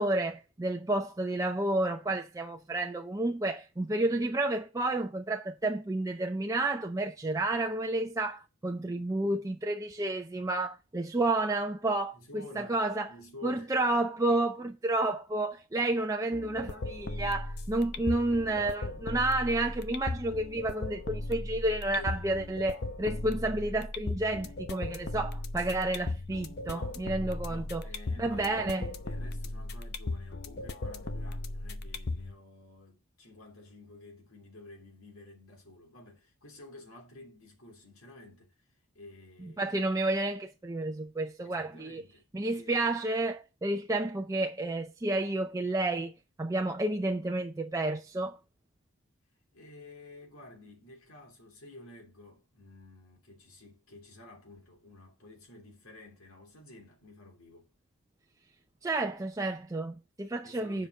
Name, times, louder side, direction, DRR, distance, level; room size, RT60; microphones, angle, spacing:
voice 1, 0.0-13.1 13.4-27.9 28.2-28.9 39.4-42.0 42.3-46.1 46.4-48.4 58.8-60.9, right 2 dB, 15° right, 0.6 m, -30 dB
voice 2, 12.1-12.8 13.1-13.7 21.9-22.3 26.7-27.1 27.5-38.6 38.9-39.7 41.4-43.0 49.5-57.7 60.4-60.9, left 2 dB, 80° left, 3.1 m, -51 dB
sound 1, 16.3-32.3, left 2 dB, 55° left, 0.7 m, -37 dB
7.3 x 5.2 x 6.5 m
head